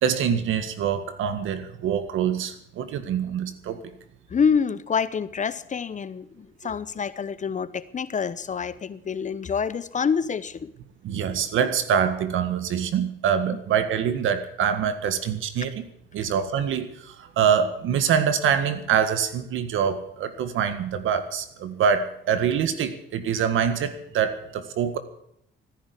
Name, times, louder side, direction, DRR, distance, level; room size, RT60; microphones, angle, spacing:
voice 1, 0.0-3.8 11.0-15.9 16.1-25.0, right 8 dB, 80° right, 10 dB, 1.8 m, -25 dB
voice 2, 4.3-10.7, left 6 dB, 40° left, 15 dB, 0.9 m, -27 dB
15.0 x 10.5 x 8.4 m, 0.73 s
cardioid pair, 90°, 20 cm